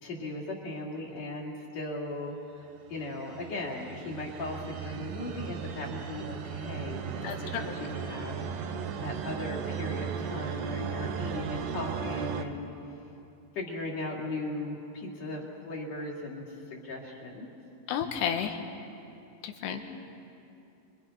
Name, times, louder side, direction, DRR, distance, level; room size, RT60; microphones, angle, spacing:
voice 1, 0.0-12.7 13.5-17.5 19.7-19.8, left 2 dB, 45° left, -2 dB, 3.6 m, -38 dB
sound 1, 2.8-12.4, right 7 dB, 70° right, 2.1 m, -36 dB
voice 2, 7.2-7.6 8.0-8.1 17.9-18.6 19.4-19.8, left 8 dB, 90° left, 5 dB, 3.5 m, -32 dB
26.5 x 23.5 x 5.7 m, 2.7 s
omnidirectional pair, 4.7 m